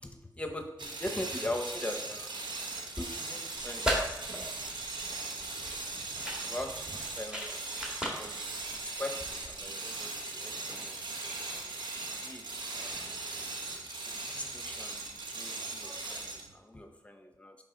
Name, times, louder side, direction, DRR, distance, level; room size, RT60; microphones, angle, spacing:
voice 1, 0.0-2.5 3.0-4.2 6.4-9.2 9.5-13.1 14.1-15.0 15.3-17.6, left 1 dB, 15° left, 4 dB, 1.0 m, -41 dB
sound 1, 0.8-16.5, right 3 dB, 90° right, 1.0 m, -39 dB
sound 2, 3.6-9.6, equal, 10° right, 1.9 m, -37 dB
9.9 x 3.8 x 3.9 m, 0.95 s
wide cardioid pair, 90°, 8 cm